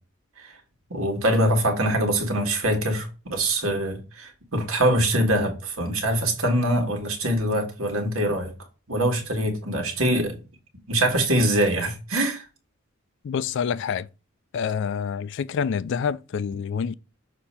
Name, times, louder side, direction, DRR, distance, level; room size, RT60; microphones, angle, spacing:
voice 1, 0.9-8.5 8.9-10.4 10.9-12.4, right 1 dB, 90° right, 1.7 m, -23 dB
voice 2, 13.2-14.1 14.5-16.9, left 6 dB, 60° left, 0.3 m, -27 dB
6.7 x 2.8 x 5.5 m
head